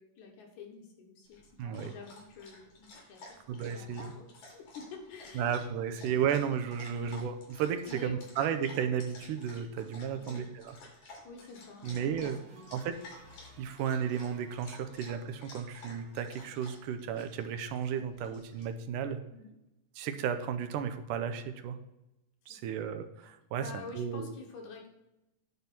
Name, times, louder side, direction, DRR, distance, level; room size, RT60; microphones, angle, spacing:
voice 1, 0.0-5.6 5.9-6.4 6.8-7.2 7.9-8.3 10.1-10.5 11.2-12.8 19.3-19.5 22.5-22.8 23.6-24.9, left 4 dB, 65° left, 2 dB, 2.6 m, -48 dB
Dog, 1.3-18.6, left 2 dB, 85° left, 4.4 m, -53 dB
voice 2, 1.6-1.9 3.5-4.1 5.4-10.8 11.8-12.4 12.7-12.9 13.6-19.2 20.0-21.8 22.5-24.3, right 8 dB, 85° right, 9 dB, 2.3 m, -33 dB
sound 1, 9.2-10.1 12.0-15.5 15.7-16.2, right 3 dB, 65° right, 2.8 m, -58 dB
9.5 x 4.5 x 6.7 m, 0.92 s
omnidirectional pair, 3.8 m